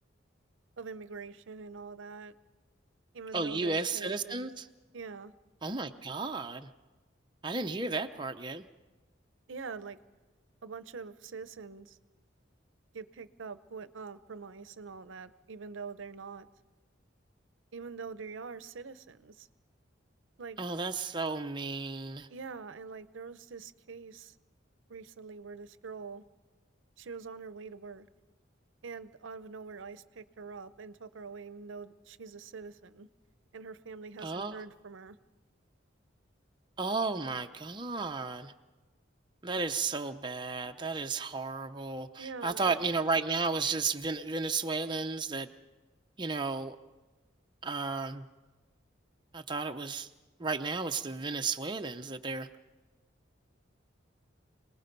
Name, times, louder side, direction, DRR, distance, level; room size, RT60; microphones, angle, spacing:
voice 1, 0.8-2.3 3.1-4.5 4.9-5.3 9.5-10.0 10.6-12.0 12.9-16.5 17.7-19.5 20.4-20.6 22.3-24.3 24.9-26.2 27.0-28.1 28.8-33.1 33.5-35.2 42.2-42.8, right 5 dB, 85° right, 14 dB, 0.7 m, -44 dB
voice 2, 3.3-4.7 5.6-6.7 7.4-8.6 20.6-22.3 34.2-34.6 36.8-38.5 39.4-45.5 46.2-46.8 47.6-48.3 49.3-50.1 50.4-52.5, right 4 dB, 25° right, 6 dB, 0.7 m, -33 dB
26.5 x 19.0 x 5.3 m, 1.2 s
head